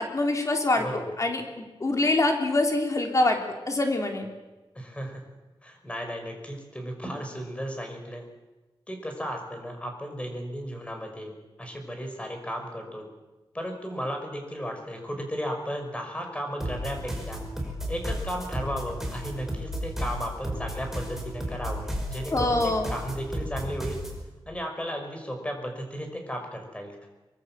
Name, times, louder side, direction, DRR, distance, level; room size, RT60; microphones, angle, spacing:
voice 1, 0.0-3.4 3.7-4.3 22.3-22.9, left 2 dB, 35° left, 3 dB, 3.4 m, -25 dB
voice 2, 4.7-5.2 5.6-8.2 8.9-11.3 11.6-13.0 13.5-17.4 17.9-24.0 24.5-27.1, equal, 15° left, 3 dB, 5.6 m, -35 dB
sound 1, 16.6-24.2, equal, 5° right, 5.4 m, -33 dB
24.0 x 23.0 x 7.6 m, 1.1 s
wide cardioid pair, 155°, 10 cm